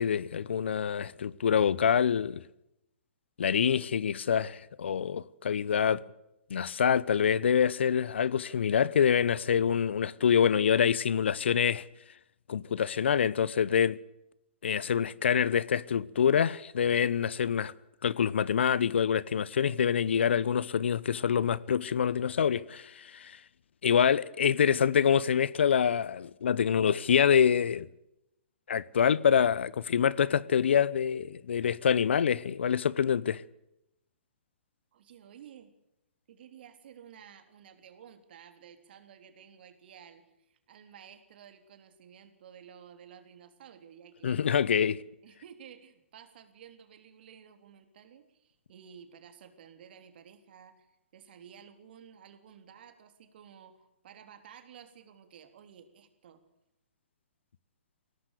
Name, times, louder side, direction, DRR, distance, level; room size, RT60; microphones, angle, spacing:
voice 1, 0.0-2.4 3.4-6.0 6.5-11.9 12.5-14.0 14.6-17.7 18.0-23.4 23.8-27.9 28.7-33.4 44.2-45.0, left 8 dB, 70° left, 0.9 m, -26 dB
voice 2, 34.9-35.7 36.3-44.4 45.2-50.9 51.1-56.4, right 8 dB, 55° right, 3.5 m, -53 dB
22.0 x 18.0 x 6.7 m
hypercardioid pair, 130°, 6 cm